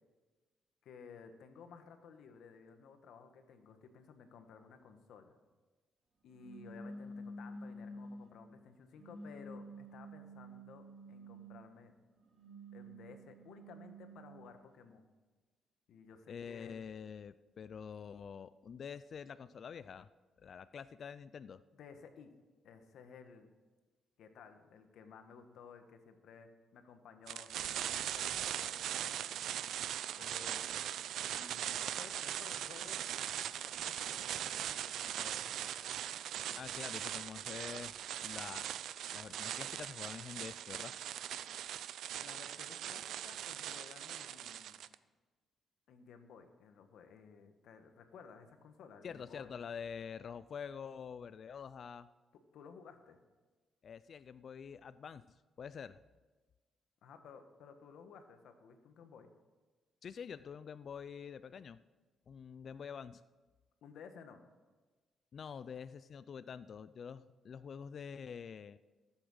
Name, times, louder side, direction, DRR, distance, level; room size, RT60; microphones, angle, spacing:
voice 1, 0.8-5.4 6.2-11.9 12.7-15.1 15.9-16.7 21.7-22.3 22.6-23.5 24.2-29.4 30.2-30.6 31.2-33.0 33.5-35.9 36.3-36.8 42.2-44.8 45.9-49.6 52.5-53.2 57.0-59.3 63.8-64.4, left 6 dB, 75° left, 7 dB, 1.4 m, -56 dB
sound 1, 6.3-8.4 9.0-11.7 12.2-14.5, equal, 50° right, 2.5 m, -50 dB
voice 2, 16.3-20.1 20.4-21.6 36.6-38.7 39.1-40.9 49.0-52.1 53.8-56.0 60.0-61.8 62.3-63.2 65.3-68.8, left 7 dB, 45° left, 14 dB, 0.3 m, -47 dB
sound 2, 27.3-44.9, right 11 dB, 75° right, 0.4 m, -40 dB
15.0 x 8.0 x 6.4 m, 1.3 s
cardioid pair, 120°, 0 cm